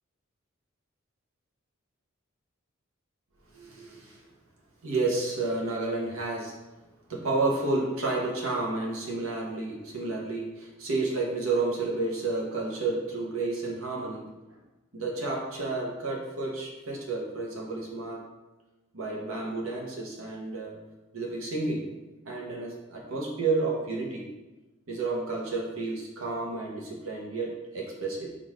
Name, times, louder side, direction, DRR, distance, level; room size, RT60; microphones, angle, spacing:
voice 1, 3.5-4.2 4.8-6.5 7.1-14.6 14.9-18.2 18.9-20.8 21.1-21.9 22.3-24.3 24.9-28.3, right 3 dB, 85° right, -2 dB, 1.0 m, -31 dB
3.8 x 2.5 x 4.7 m, 1.1 s
head